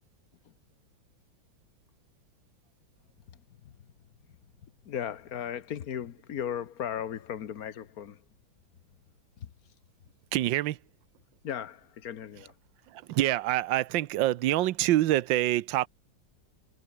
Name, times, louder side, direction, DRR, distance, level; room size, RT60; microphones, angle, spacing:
voice 1, 3.3-3.9 4.3-8.3 9.4-9.5 11.4-12.6, left 9 dB, 55° left, 1.4 m, -37 dB
voice 2, 10.3-10.8 12.9-15.9, right 14 dB, 75° right, 1.5 m, -26 dB
omnidirectional pair, 2.2 m